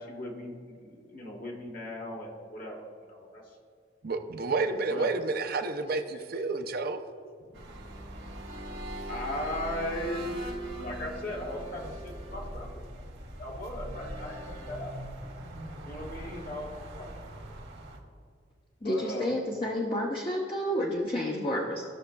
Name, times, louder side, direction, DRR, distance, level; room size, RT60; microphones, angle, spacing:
voice 1, 0.0-3.4 4.9-5.1 5.8-6.4 7.5-7.6 9.1-10.4 10.8-12.8 13.4-14.9 15.8-17.1 18.8-19.3, left 1 dB, 50° left, -1 dB, 1.4 m, -38 dB
voice 2, 4.0-7.0, right 3 dB, 55° right, 7 dB, 0.5 m, -30 dB
sound 1, 7.5-18.0, right 1 dB, 80° right, 1.5 m, -41 dB
voice 3, 18.8-21.8, left 1 dB, 30° left, -2 dB, 0.7 m, -30 dB
15.0 x 6.5 x 2.3 m, 2.1 s
head